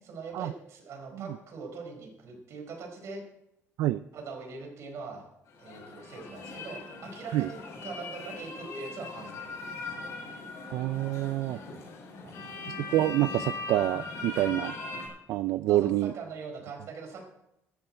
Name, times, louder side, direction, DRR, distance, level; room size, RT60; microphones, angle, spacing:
voice 1, 0.0-3.2 4.1-5.3 5.6-9.4 9.9-10.1 12.2-12.6 15.7-17.3, right 4 dB, 60° right, 3 dB, 4.6 m, -42 dB
sound 1, 5.5-15.1, left 3 dB, 70° left, 7.0 m, -40 dB
voice 2, 10.7-11.6 12.9-14.7 15.3-16.1, right 15 dB, 85° right, 14 dB, 0.4 m, -27 dB
15.5 x 12.5 x 4.4 m, 0.84 s
cardioid pair, 135°, 5 cm